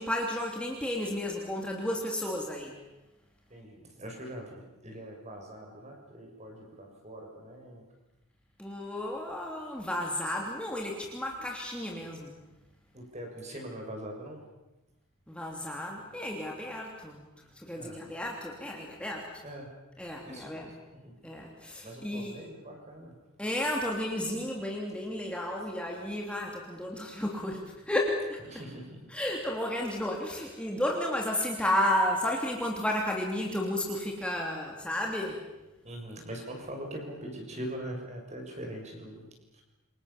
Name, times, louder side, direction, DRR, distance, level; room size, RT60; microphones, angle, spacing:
voice 1, 0.0-2.7 8.6-12.3 15.3-17.2 17.6-19.3 20.0-20.7 21.2-22.3 23.4-28.4 29.1-35.4, left 1 dB, 5° left, -1 dB, 3.0 m, -32 dB
voice 2, 3.5-7.8 11.4-11.5 12.9-14.4 17.7-18.0 19.4-19.7 20.2-21.2 21.8-23.1 28.5-29.1 35.8-39.6, right 1 dB, 30° right, 2 dB, 6.8 m, -42 dB
28.5 x 26.0 x 7.3 m, 1.0 s
head